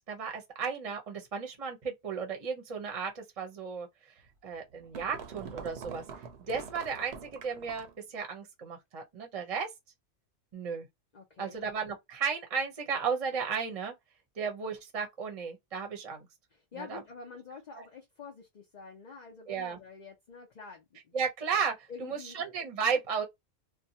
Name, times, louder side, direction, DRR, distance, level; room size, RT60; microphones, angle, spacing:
voice 1, 0.1-3.9 4.4-6.0 6.5-9.7 10.5-10.9 11.4-13.9 14.4-16.3 16.8-17.0 17.7-17.8 19.5-19.8 21.1-23.2, right 6 dB, 35° right, 0.8 m, -34 dB
sound 1, 4.3-8.0, right 6 dB, 70° right, 0.9 m, -45 dB
voice 2, 11.1-11.6 16.5-21.1 21.9-22.4, left 5 dB, 45° left, 0.7 m, -47 dB
2.7 x 2.2 x 2.7 m
omnidirectional pair, 1.2 m